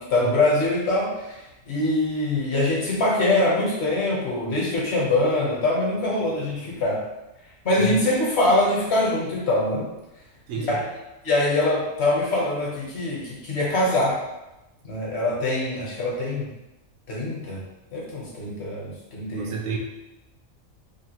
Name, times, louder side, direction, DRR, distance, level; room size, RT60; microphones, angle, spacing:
voice 1, 0.1-1.4 1.7-7.0 7.6-9.9 10.5-10.8 11.2-14.2 14.8-16.4 17.1-17.6 17.9-19.5, left 2 dB, 55° left, -5 dB, 1.0 m, -23 dB
voice 2, 10.5-10.8 19.3-19.8, right 6 dB, 75° right, -1 dB, 0.9 m, -30 dB
3.2 x 2.3 x 2.8 m, 0.96 s
omnidirectional pair, 1.4 m